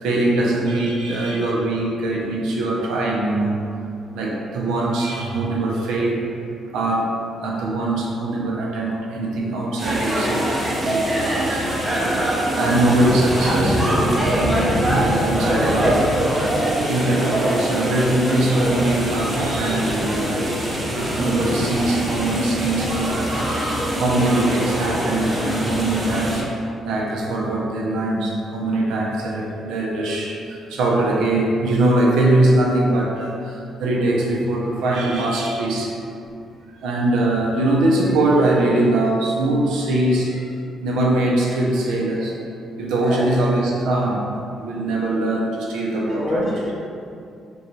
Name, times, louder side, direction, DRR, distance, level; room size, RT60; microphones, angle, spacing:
voice 1, 0.0-3.6 4.1-6.2 6.7-7.1 7.4-10.5 10.8-11.7 12.5-16.1 16.9-23.3 24.0-26.5 26.8-35.9 36.8-40.4 40.8-42.3 42.8-44.3 44.6-46.5, right 2 dB, 90° right, -3 dB, 0.5 m, -22 dB
sound 1, 9.8-26.4, right 1 dB, 20° right, 0.6 m, -23 dB
voice 2, 43.0-43.4 43.9-44.1 46.1-46.7, left 1 dB, 40° left, -8 dB, 0.5 m, -27 dB
3.0 x 2.2 x 2.6 m, 2.5 s
cardioid pair, 90°, 0 cm